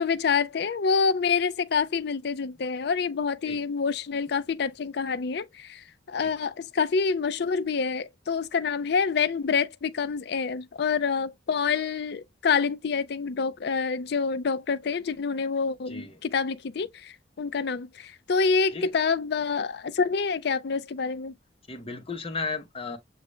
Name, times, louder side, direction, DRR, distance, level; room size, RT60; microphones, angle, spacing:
voice 1, 0.0-21.3, left 5 dB, 60° left, 0.5 m, -27 dB
voice 2, 15.9-16.2 18.7-18.9 21.7-23.0, left 4 dB, 30° left, 1.0 m, -34 dB
6.6 x 2.5 x 3.1 m
head